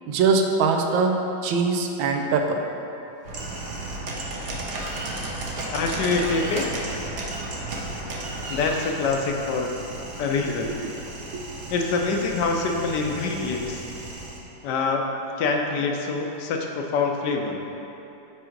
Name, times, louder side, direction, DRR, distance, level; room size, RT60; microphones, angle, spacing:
voice 1, 0.1-2.6 10.6-10.9 11.3-11.4, right 4 dB, 90° right, 3 dB, 1.4 m, -23 dB
sound 1, 3.2-14.4, right 2 dB, 55° right, 0.9 m, -34 dB
voice 2, 5.7-6.7 8.5-9.7 10.2-10.7 11.7-13.8 14.6-15.1 15.4-17.6, left 4 dB, 70° left, 2 dB, 1.1 m, -25 dB
6.2 x 4.8 x 4.5 m, 2.9 s
omnidirectional pair, 2.1 m